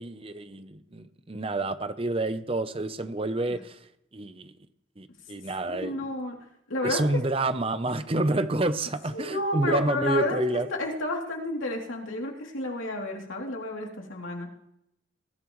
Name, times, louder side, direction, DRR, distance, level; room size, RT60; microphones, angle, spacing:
voice 1, 0.0-3.8 4.1-4.5 5.0-6.1 6.8-10.7, right 2 dB, 30° right, 11 dB, 0.7 m, -29 dB
voice 2, 5.7-6.4 6.7-7.0 9.1-14.5, left 2 dB, 90° left, 0 dB, 3.1 m, -31 dB
20.5 x 14.0 x 3.2 m, 0.76 s
head